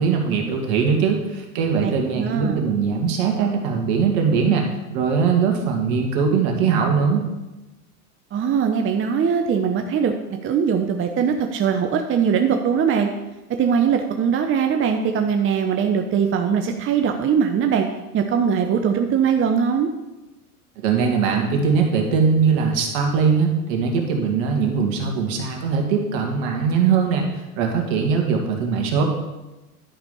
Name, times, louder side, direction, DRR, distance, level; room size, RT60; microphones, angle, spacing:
voice 1, 0.0-7.2 20.8-27.3 27.6-29.0, right 5 dB, 60° right, 2 dB, 2.3 m, -21 dB
voice 2, 1.8-2.6 8.3-10.1 10.4-13.1 13.6-17.9 18.1-19.9, right 7 dB, 25° right, 5 dB, 0.7 m, -21 dB
11.0 x 5.1 x 5.5 m, 1.0 s
hypercardioid pair, 95°, 47 cm